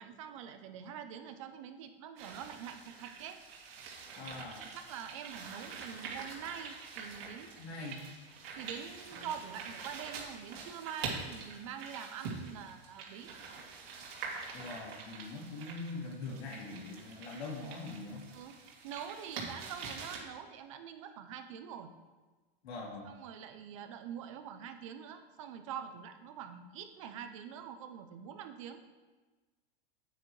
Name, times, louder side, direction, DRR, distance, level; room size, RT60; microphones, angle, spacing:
voice 1, 0.0-3.4 4.6-7.5 8.6-13.3 18.3-21.9 23.0-28.8, right 8 dB, 30° right, 7 dB, 0.5 m, -45 dB
rocks rolling and leaf rustle, 2.2-20.2, right 5 dB, 70° right, 2.6 m, -45 dB
voice 2, 4.2-4.7 7.6-8.0 14.5-18.2 22.6-23.1, left 3 dB, 85° left, -2 dB, 3.0 m, -43 dB
9.2 x 8.9 x 3.2 m, 1.3 s
supercardioid pair, 175°, 31 cm